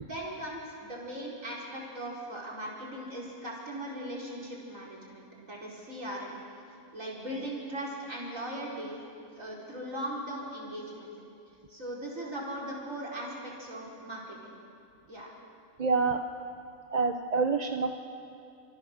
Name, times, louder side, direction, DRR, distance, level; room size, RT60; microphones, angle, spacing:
voice 1, 0.0-6.4 6.9-9.0 9.3-11.1 11.7-14.5 15.1-15.3, right 1 dB, 65° right, -3 dB, 5.0 m, -39 dB
voice 2, 15.8-16.2 16.9-17.9, right 4 dB, 35° right, 5 dB, 0.9 m, -27 dB
29.5 x 27.5 x 6.7 m, 2.5 s
omnidirectional pair, 1.5 m